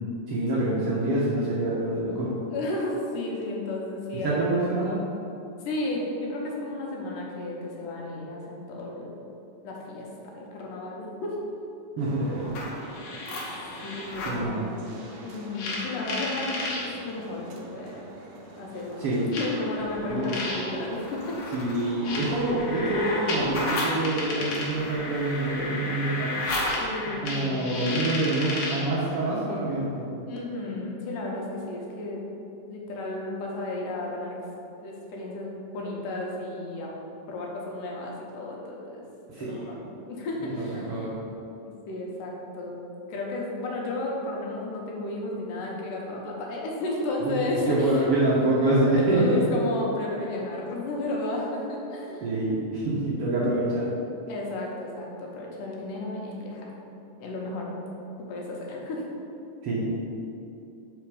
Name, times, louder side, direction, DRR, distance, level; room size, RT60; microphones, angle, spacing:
voice 1, 0.3-2.3 4.2-5.0 12.0-12.4 14.2-14.7 19.0-19.3 20.1-20.3 21.5-26.3 27.2-29.9 39.3-39.7 40.4-41.2 47.2-49.4 52.2-53.9 59.6-60.1, right 2 dB, 65° right, -7 dB, 1.5 m, -26 dB
voice 2, 2.5-4.8 5.6-9.1 9.6-11.4 13.8-14.7 15.2-17.5 17.7-18.1 18.6-21.5 26.8-27.9 30.3-32.2 32.7-34.4 34.8-36.9 37.3-39.0 39.4-39.8 40.1-40.9 41.7-48.1 49.0-52.3 54.3-56.7 57.2-57.7 58.3-59.0, left 2 dB, 85° left, -2 dB, 2.7 m, -33 dB
sound 1, 12.0-24.8, right 2 dB, 90° right, 1.2 m, -46 dB
sound 2, 12.4-14.4 15.5-16.8 17.9-18.0 19.3-28.9, left 2 dB, 65° left, 2.3 m, -32 dB
6.8 x 4.9 x 4.8 m, 2.8 s
omnidirectional pair, 3.7 m